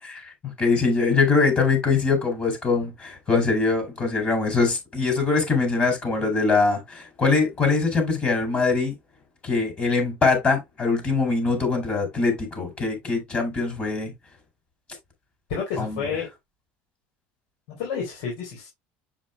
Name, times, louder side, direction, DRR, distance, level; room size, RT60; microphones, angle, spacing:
voice 1, 0.0-8.9 9.4-14.1 15.8-16.0, left 4 dB, 30° left, 4.4 m, -23 dB
voice 2, 15.5-16.3 17.8-18.7, left 6 dB, 80° left, 3.7 m, -29 dB
7.3 x 6.9 x 2.2 m
cardioid pair, 135°, 4 cm